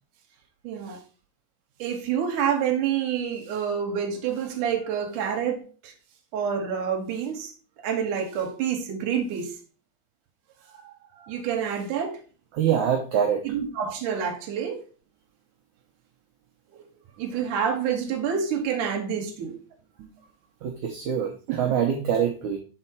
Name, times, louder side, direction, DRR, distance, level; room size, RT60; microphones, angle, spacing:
voice 1, 0.6-1.0 1.8-5.9 6.3-7.5 7.8-9.5 10.8-10.9 11.2-12.2 13.4-14.8 17.2-19.5 20.0-20.1, right 7 dB, 70° right, 2.2 m, -28 dB
voice 2, 12.5-13.4 20.6-22.6, right 8 dB, 85° right, 1.6 m, -24 dB
6.9 x 4.3 x 4.4 m
omnidirectional pair, 4.5 m